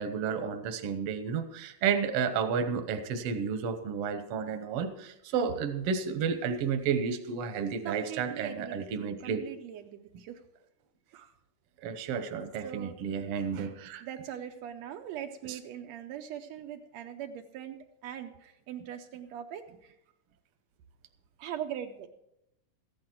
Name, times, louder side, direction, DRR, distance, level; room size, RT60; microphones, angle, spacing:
voice 1, 0.0-9.4 11.1-11.3 11.8-14.0 15.4-15.6, right 6 dB, 70° right, 8 dB, 1.4 m, -32 dB
voice 2, 7.8-10.4 12.6-12.9 14.0-17.8 18.0-19.9 21.4-22.1, right 10 dB, 90° right, 4 dB, 1.5 m, -41 dB
14.5 x 10.5 x 4.5 m, 0.81 s
omnidirectional pair, 3.8 m